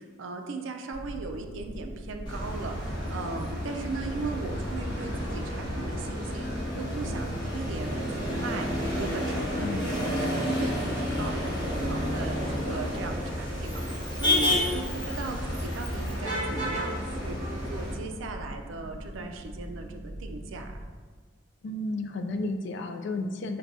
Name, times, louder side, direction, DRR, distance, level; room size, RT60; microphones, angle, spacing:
voice 1, 0.0-8.7 9.0-20.7, right 3 dB, 65° right, 4 dB, 0.4 m, -38 dB
sound 1, 0.9-20.8, right 1 dB, 85° left, 1.0 m, -41 dB
Motor vehicle (road), 2.3-17.9, left 1 dB, 20° left, 1.0 m, -31 dB
voice 2, 9.6-10.3 21.6-23.6, left 2 dB, 60° left, 5 dB, 0.3 m, -33 dB
5.9 x 2.2 x 2.6 m, 1.5 s
head